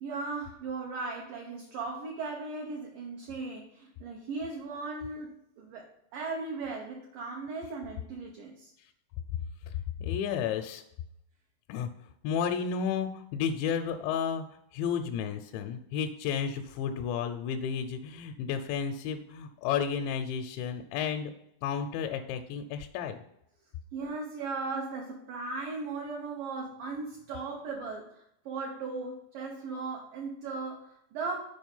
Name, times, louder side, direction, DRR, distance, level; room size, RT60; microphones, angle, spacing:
voice 1, 0.0-8.7 23.9-31.5, right 3 dB, 80° right, 0 dB, 1.9 m, -37 dB
voice 2, 10.0-10.8 11.7-11.9 12.2-21.3 21.6-23.2, left 7 dB, 80° left, 5 dB, 2.7 m, -32 dB
7.9 x 4.8 x 5.4 m, 0.76 s
omnidirectional pair, 5.4 m